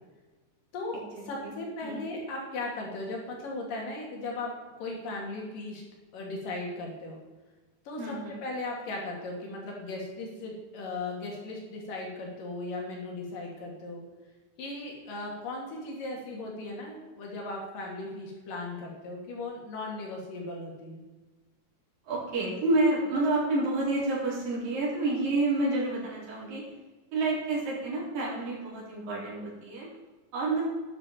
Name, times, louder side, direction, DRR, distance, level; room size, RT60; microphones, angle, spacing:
voice 1, 1.3-4.5 4.8-5.8 6.1-7.2 7.9-8.1 8.4-14.0 14.6-21.0, left 2 dB, 60° left, -1 dB, 3.9 m, -37 dB
voice 2, 8.0-8.3 22.0-26.6 27.1-29.9 30.3-30.6, right 2 dB, 60° right, -6 dB, 5.3 m, -29 dB
12.0 x 9.7 x 4.5 m, 1.3 s
omnidirectional pair, 4.6 m